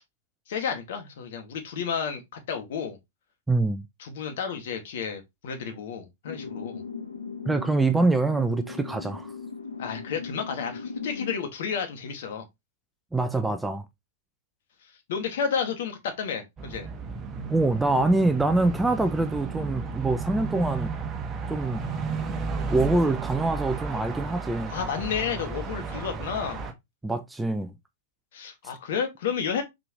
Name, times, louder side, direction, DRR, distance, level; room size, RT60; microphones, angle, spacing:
voice 1, 0.5-2.2 2.5-3.0 4.0-6.8 9.8-12.5 15.1-16.9 24.7-26.7 28.3-29.6, left 7 dB, 55° left, 2.1 m, -31 dB
voice 2, 3.5-3.8 7.5-9.3 13.1-13.8 17.5-20.9 21.5-21.8 22.7-24.7 27.0-27.7, right 2 dB, 5° right, 0.7 m, -24 dB
sound 1, 6.2-11.3, left 5 dB, 80° left, 1.5 m, -38 dB
sound 2, 16.6-26.7, right 5 dB, 25° right, 1.3 m, -33 dB
6.0 x 5.0 x 3.1 m
figure-of-eight pair, 105°, 0 cm